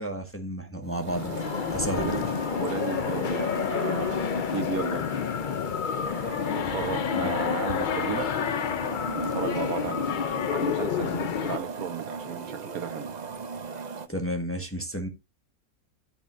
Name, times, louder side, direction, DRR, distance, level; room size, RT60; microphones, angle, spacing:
voice 1, 0.0-1.4 1.7-2.1 7.1-7.3 14.1-15.1, right 1 dB, 10° left, 1.3 m, -32 dB
sound 1, 0.8-14.1, right 5 dB, 35° right, 0.7 m, -39 dB
sound 2, 1.1-11.6, left 8 dB, 60° left, 0.5 m, -29 dB
voice 2, 1.9-2.2 2.6-5.3 6.5-8.3 9.1-13.1, right 6 dB, 75° right, 1.4 m, -34 dB
10.5 x 8.7 x 2.6 m
omnidirectional pair, 1.5 m